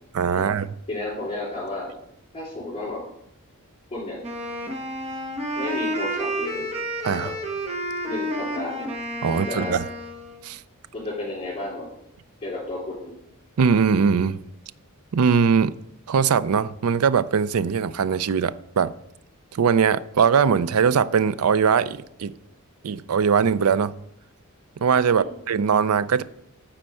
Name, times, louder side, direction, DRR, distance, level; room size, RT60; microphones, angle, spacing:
voice 1, 0.1-0.7 7.0-7.3 9.2-9.8 10.4-10.6 13.6-14.4 15.1-15.8 16.1-18.9 19.5-22.3 22.8-24.0 24.8-26.2, right 6 dB, 75° right, 0.4 m, -21 dB
voice 2, 0.9-1.9 2.3-3.0 3.9-4.2 5.5-6.7 7.2-7.3 8.1-8.8 9.3-9.8 10.9-11.9 12.4-13.2 25.1-25.4, left 2 dB, 25° left, 3.5 m, -32 dB
Wind instrument woodwind instrument, 4.2-10.4, right 1 dB, 30° right, 1.4 m, -30 dB
9.7 x 4.4 x 7.6 m
head